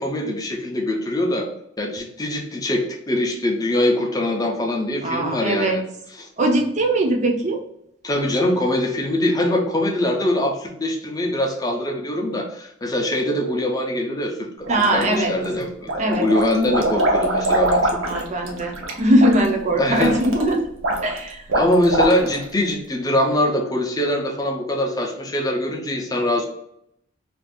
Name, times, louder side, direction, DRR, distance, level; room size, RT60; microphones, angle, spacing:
voice 1, 0.0-1.5 1.8-5.8 6.2-6.3 8.0-18.0 19.8-20.2 21.5-26.5, left 1 dB, 20° left, 0 dB, 0.5 m, -23 dB
voice 2, 5.0-5.8 6.4-7.6 14.7-15.3 16.0-16.3 18.1-20.6 21.0-21.4, right 1 dB, 35° right, 2 dB, 0.5 m, -20 dB
sound 1, 14.6-15.4 15.8-22.5, right 1 dB, 80° right, 0.7 m, -23 dB
2.5 x 2.4 x 3.5 m, 0.77 s
head